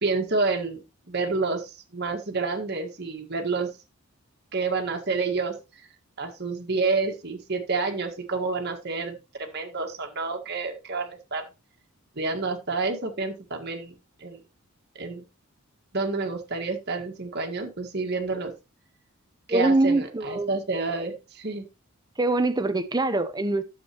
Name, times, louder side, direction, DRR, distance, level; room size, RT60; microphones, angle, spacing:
voice 1, 0.0-0.8 1.1-3.7 4.5-5.5 6.2-11.4 12.1-14.4 14.9-15.2 15.9-18.5 19.5-21.6, right 3 dB, 50° right, 1.8 m, -29 dB
voice 2, 19.5-20.5 22.2-23.6, right 2 dB, 20° right, 0.7 m, -23 dB
11.5 x 7.4 x 3.0 m
head